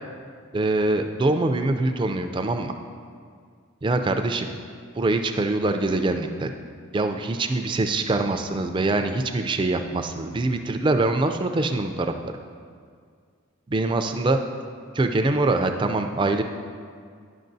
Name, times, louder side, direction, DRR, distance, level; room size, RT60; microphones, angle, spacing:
voice 1, 0.5-2.7 3.8-4.5 5.0-6.5 6.9-12.3 13.7-14.4 15.0-16.4, right 2 dB, 25° right, 6 dB, 0.3 m, -24 dB
10.0 x 6.0 x 2.6 m, 2.1 s
head